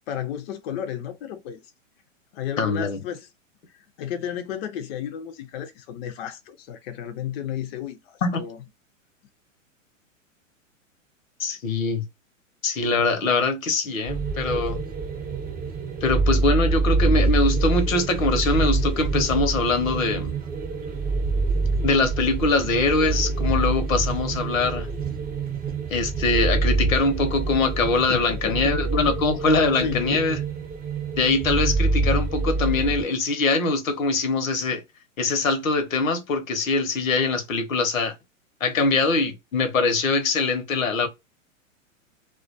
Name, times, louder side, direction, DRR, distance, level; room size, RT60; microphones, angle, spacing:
voice 1, 0.1-1.7 2.3-3.3 3.7-8.6 28.1-28.8 29.7-30.2, left 9 dB, 50° left, 0.5 m, -33 dB
voice 2, 2.6-3.0 8.2-8.4 11.4-12.0 12.6-14.8 16.0-20.4 21.8-24.9 25.9-30.4 31.2-34.8 35.2-38.1 38.6-41.1, left 3 dB, 80° left, 0.8 m, -23 dB
sound 1, 14.1-33.0, right 3 dB, 20° right, 0.7 m, -26 dB
2.2 x 2.2 x 2.5 m
hypercardioid pair, 110°, 40 cm